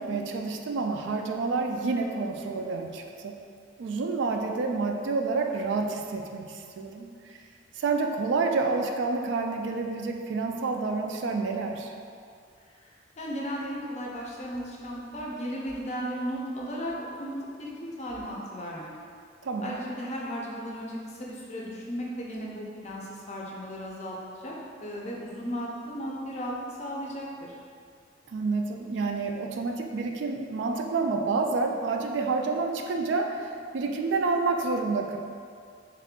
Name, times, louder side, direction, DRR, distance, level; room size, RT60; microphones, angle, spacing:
voice 1, 0.0-3.3 3.8-7.1 7.8-11.9 19.4-19.7 28.3-33.4 33.7-35.2, right 4 dB, 70° right, 3 dB, 0.3 m, -28 dB
voice 2, 13.2-18.9 19.6-24.5 24.8-26.5 26.8-27.5, equal, 35° left, -3 dB, 0.5 m, -35 dB
3.5 x 2.4 x 3.6 m, 2.3 s
head